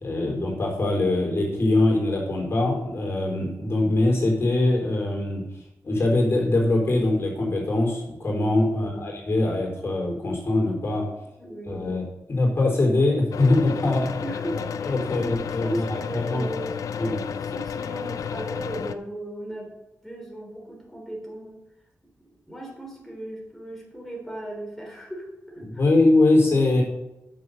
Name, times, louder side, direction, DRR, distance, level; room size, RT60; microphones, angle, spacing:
voice 1, 0.0-5.4 5.8-11.1 11.7-12.0 12.3-14.1 14.8-16.5 17.0-17.3 25.7-26.8, left 2 dB, 45° left, -1 dB, 4.0 m, -22 dB
voice 2, 8.7-9.1 11.4-11.8 14.2-16.8 17.5-19.7 20.0-21.6 22.5-25.8, right 1 dB, 5° left, -2 dB, 3.7 m, -36 dB
sound 1, 13.3-18.9, left 7 dB, 85° left, 0.5 m, -32 dB
9.3 x 7.2 x 6.4 m, 0.92 s
cardioid pair, 75°, 6 cm